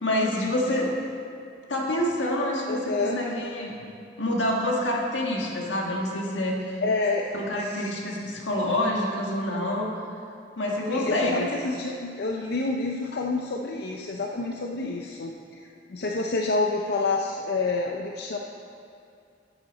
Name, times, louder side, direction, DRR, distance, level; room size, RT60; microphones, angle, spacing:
voice 1, 0.0-0.9 1.7-3.7 4.2-6.6 7.3-9.9 10.6-11.5, left 1 dB, 85° left, -1 dB, 1.6 m, -27 dB
voice 2, 2.7-3.2 6.8-7.2 7.6-7.9 10.9-18.4, left 3 dB, 60° left, 1 dB, 0.5 m, -28 dB
11.0 x 7.9 x 4.1 m, 2.5 s
head